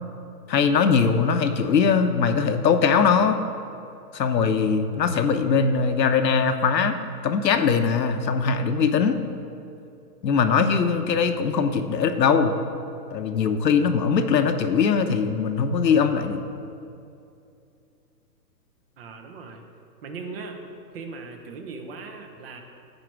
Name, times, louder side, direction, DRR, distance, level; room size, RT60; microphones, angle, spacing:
voice 1, 0.5-3.4 4.1-7.0 7.2-9.2 10.2-12.6 13.1-16.4, left 6 dB, 85° left, 8 dB, 1.0 m, -21 dB
voice 2, 19.0-19.6 20.0-20.6 20.9-22.6, right 4 dB, 35° right, 4 dB, 1.1 m, -38 dB
14.5 x 4.9 x 4.7 m, 2.6 s
hypercardioid pair, 155°, 50 cm